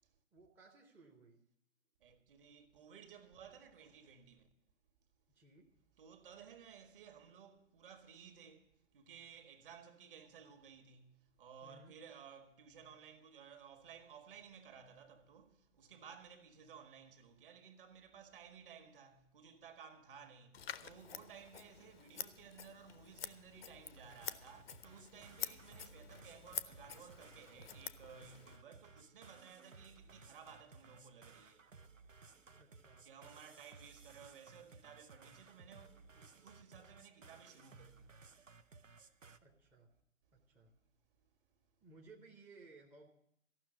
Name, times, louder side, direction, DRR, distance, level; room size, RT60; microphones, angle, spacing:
voice 1, 0.3-1.4 5.3-5.7 11.6-12.0 32.6-33.4 39.4-39.9 40.3-40.7 41.8-43.1, right 3 dB, 5° right, 0.7 m, -61 dB
voice 2, 2.0-4.5 6.0-31.8 33.0-38.2 41.2-41.6, right 7 dB, 45° right, 1.5 m, -57 dB
Scissors, 20.5-28.6, left 8 dB, 50° left, 0.7 m, -48 dB
sound 1, 23.9-39.4, right 4 dB, 90° right, 0.8 m, -60 dB
14.5 x 6.1 x 9.8 m
figure-of-eight pair, 125°, 37 cm